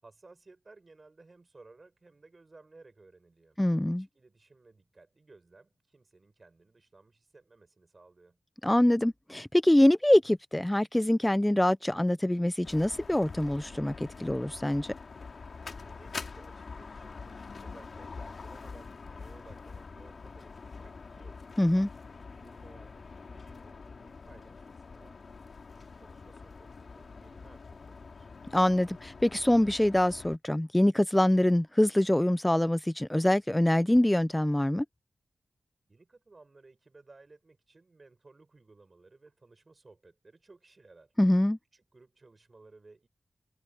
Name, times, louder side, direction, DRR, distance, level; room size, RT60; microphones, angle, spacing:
voice 1, 0.0-3.6 3.9-8.4 15.8-21.6 22.1-25.2 25.7-28.3 35.9-41.1 41.7-43.1, right 3 dB, 45° right, 5.5 m, -58 dB
voice 2, 3.6-4.1 8.6-14.9 21.6-21.9 28.5-34.8 41.2-41.6, left 1 dB, 10° left, 0.4 m, -24 dB
sound 1, 12.6-30.4, left 4 dB, 65° left, 2.4 m, -45 dB
cardioid pair, 50°, 0 cm